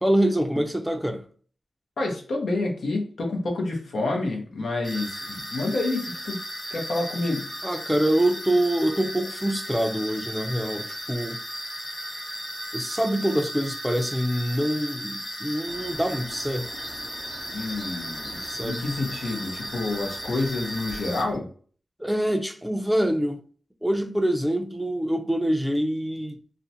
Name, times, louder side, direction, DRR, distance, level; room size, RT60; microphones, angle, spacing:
voice 1, 0.0-1.2 7.6-11.4 12.7-16.7 18.4-18.8 22.0-23.4 23.8-26.4, right 1 dB, 5° right, 0.4 m, -25 dB
voice 2, 2.0-6.4 6.7-7.5 17.5-21.5, left 2 dB, 80° left, 0.6 m, -28 dB
sound 1, 4.8-21.2, equal, 25° left, 1.1 m, -36 dB
sound 2, 15.6-21.4, right 2 dB, 70° right, 0.4 m, -45 dB
2.4 x 2.1 x 2.7 m
cardioid pair, 45°, 0 cm